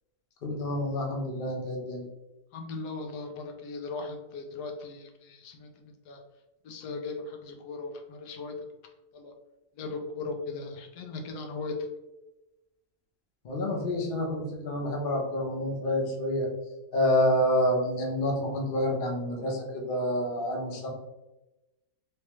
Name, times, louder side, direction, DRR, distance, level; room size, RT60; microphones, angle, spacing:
voice 1, 0.4-2.1 13.4-16.5 16.9-20.9, left 1 dB, 45° left, 0 dB, 0.7 m, -28 dB
voice 2, 2.5-6.2 6.6-8.5 9.1-9.3 9.8-11.7, left 3 dB, 80° left, 3 dB, 1.2 m, -38 dB
3.2 x 3.2 x 3.0 m, 1.0 s
omnidirectional pair, 1.7 m